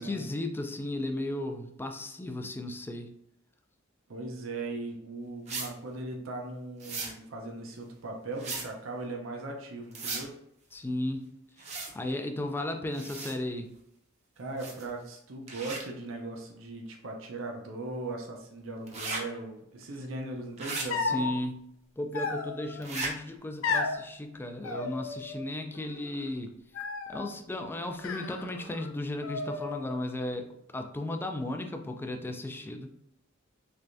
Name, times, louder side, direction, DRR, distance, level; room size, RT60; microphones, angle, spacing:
voice 1, 0.0-3.1 10.7-11.3 11.6-13.7 21.0-21.6 22.0-26.5 27.1-30.5 30.7-32.9, left 1 dB, 10° left, 5 dB, 0.3 m, -35 dB
voice 2, 4.1-10.3 14.4-21.3, right 2 dB, 70° right, 1 dB, 0.6 m, -39 dB
sound 1, 5.5-5.7 6.8-7.1 8.4-8.7 9.9-10.3 11.6-11.9 12.9-13.4 14.6-14.9 15.5-15.8 18.9-19.2 20.6-20.9 22.8-23.1, right 3 dB, 35° right, 0.7 m, -36 dB
sound 2, 20.9-21.3 22.1-22.8 23.6-24.0 24.6-25.5 25.7-26.3 26.7-27.3 28.0-28.9 29.2-30.0, left 4 dB, 80° left, 0.5 m, -34 dB
3.3 x 3.3 x 2.6 m, 0.76 s
head